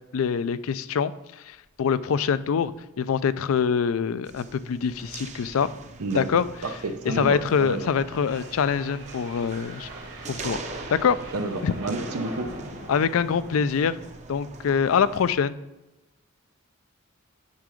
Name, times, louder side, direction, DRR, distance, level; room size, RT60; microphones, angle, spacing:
voice 1, 0.1-1.1 1.5-2.7 3.0-5.7 6.2-6.4 7.1-9.9 10.3-10.6 10.9-11.2 11.6-11.7 12.9-13.9 14.3-15.6, left 6 dB, 70° left, 15 dB, 0.4 m, -24 dB
sound 1, 1.7-1.9 2.2-2.3 2.6-2.7 3.2-3.5 4.8-14.1, right 1 dB, 65° right, 1.6 m, -43 dB
sound 2, 4.2-15.3, right 3 dB, 35° right, 0.6 m, -42 dB
voice 2, 6.0-7.9 11.3-12.5, right 2 dB, 90° right, 8 dB, 0.8 m, -30 dB
9.6 x 3.8 x 4.9 m, 1.0 s
head